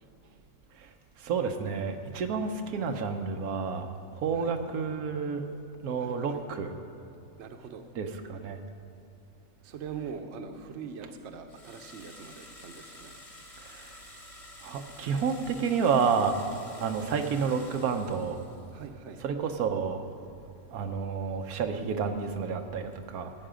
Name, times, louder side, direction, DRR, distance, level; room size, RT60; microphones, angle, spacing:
voice 1, 1.2-3.9 4.1-5.4 5.8-6.7 8.0-8.6 13.6-13.9 14.6-16.4 16.8-18.4 19.2-20.0 20.7-23.3, right 6 dB, 90° right, 6 dB, 1.3 m, -30 dB
voice 2, 6.0-6.4 7.4-7.8 9.6-13.1 18.7-19.2, right 6 dB, 60° right, 6 dB, 1.0 m, -42 dB
sound 1, 11.5-18.8, left 1 dB, 25° left, 1.3 m, -50 dB
14.5 x 8.8 x 5.0 m, 2.6 s
omnidirectional pair, 1.5 m